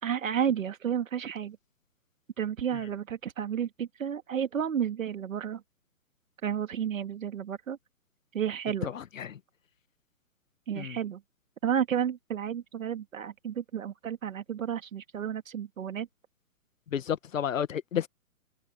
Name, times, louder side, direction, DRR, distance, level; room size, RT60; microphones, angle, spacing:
voice 1, 0.0-1.6 2.4-5.6 6.4-7.8 8.3-8.9 10.7-11.2 11.6-16.1, right 8 dB, 60° right, 2.2 m, -31 dB
voice 2, 8.8-9.4 10.8-11.0 16.9-18.1, left 9 dB, 60° left, 1.8 m, -31 dB
hypercardioid pair, 140°, 45 cm